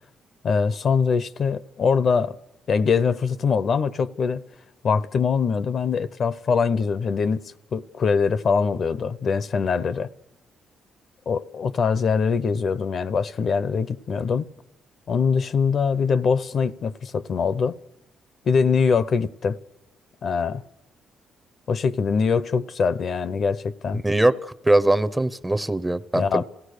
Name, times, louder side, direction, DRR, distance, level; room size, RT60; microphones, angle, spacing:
voice 1, 0.4-2.4 2.7-4.4 4.8-10.1 11.3-14.5 15.1-17.8 18.5-19.6 20.2-20.6 21.7-24.0 26.2-26.4, left 5 dB, 55° left, 0.7 m, -23 dB
voice 2, 24.0-26.4, right 1 dB, 10° right, 0.7 m, -21 dB
27.5 x 16.5 x 6.6 m
cardioid pair, 90°, 0 cm